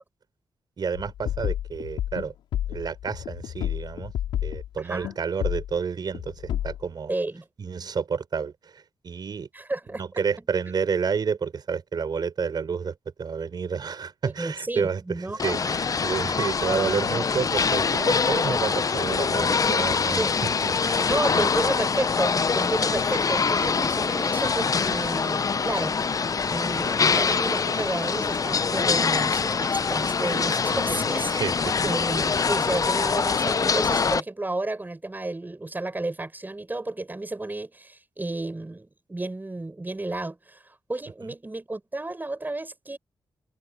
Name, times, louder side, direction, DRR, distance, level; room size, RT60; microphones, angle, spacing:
voice 1, 0.8-2.3 2.7-4.1 4.4-7.1 7.6-9.5 10.0-20.3 20.6-21.7 30.7-31.8, right 6 dB, 60° right, 4.7 m, -30 dB
sound 1, 0.9-4.7 5.0-5.2 5.4-5.7 6.1-6.8, left 11 dB, 90° left, 5.2 m, -30 dB
voice 2, 4.8-5.2 7.1-7.4 9.5-10.0 14.4-15.4 20.2-20.3 21.1-26.0 26.5-31.3 31.8-43.0, right 2 dB, 20° right, 7.2 m, -32 dB
sound 2, 15.4-34.2, left 5 dB, 45° left, 0.8 m, -24 dB
supercardioid pair, 55°, 8 cm